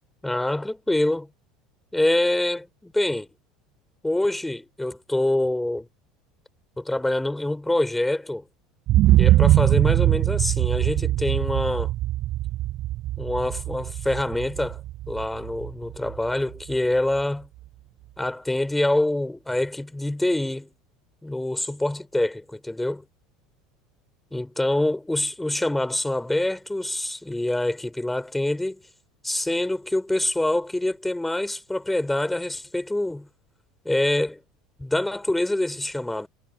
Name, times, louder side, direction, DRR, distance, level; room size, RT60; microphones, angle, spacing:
voice 1, 0.2-1.3 1.9-3.3 4.0-5.9 6.8-8.4 9.2-11.9 13.2-14.8 15.1-17.5 18.2-20.7 21.2-23.0 24.3-28.8 29.2-33.3 33.8-34.4 34.8-36.3, left 1 dB, 5° left, 4.2 m, -25 dB
sound 1, 8.9-16.7 17.2-17.3, right 15 dB, 45° right, 0.3 m, -22 dB
figure-of-eight pair, 70°, 2 cm